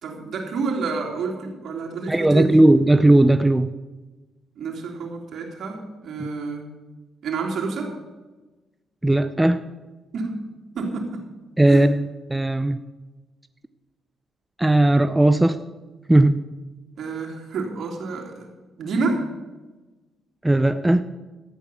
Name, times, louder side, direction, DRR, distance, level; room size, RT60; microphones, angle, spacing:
voice 1, 0.0-2.6 4.6-6.7 7.2-8.0 10.1-10.4 10.7-11.3 11.7-11.8 17.0-18.5 18.8-19.3, right 4 dB, 60° right, 0 dB, 3.5 m, -29 dB
voice 2, 2.1-3.7 6.2-6.3 9.0-9.6 11.6-12.8 14.6-15.6 16.1-16.4 20.4-21.0, right 1 dB, 10° right, 10 dB, 0.5 m, -17 dB
13.5 x 9.4 x 7.2 m, 1.2 s
cardioid pair, 90°, 0 cm